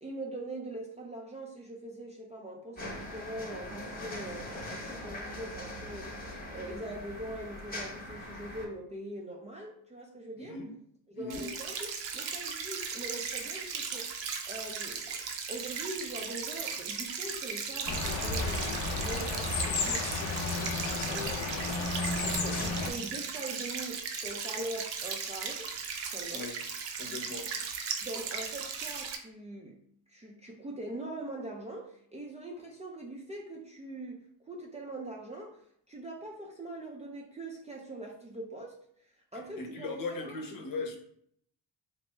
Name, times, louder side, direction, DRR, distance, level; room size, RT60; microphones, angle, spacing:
voice 1, 0.0-10.6 11.1-14.1 14.4-25.7 26.1-26.5 28.0-29.8 30.1-40.4, right 1 dB, 15° right, -3 dB, 0.3 m, -42 dB
sound 1, 2.8-8.6, left 1 dB, 20° left, 0.8 m, -41 dB
voice 2, 10.4-10.7 11.1-11.5 26.3-26.6 27.0-27.5 39.6-41.0, left 3 dB, 45° left, 2 dB, 0.8 m, -38 dB
sound 2, 11.3-29.2, right 6 dB, 70° right, 0.6 m, -37 dB
sound 3, 17.9-22.9, left 3 dB, 90° left, 0.6 m, -32 dB
3.0 x 2.2 x 3.1 m, 0.65 s
cardioid pair, 80°, 46 cm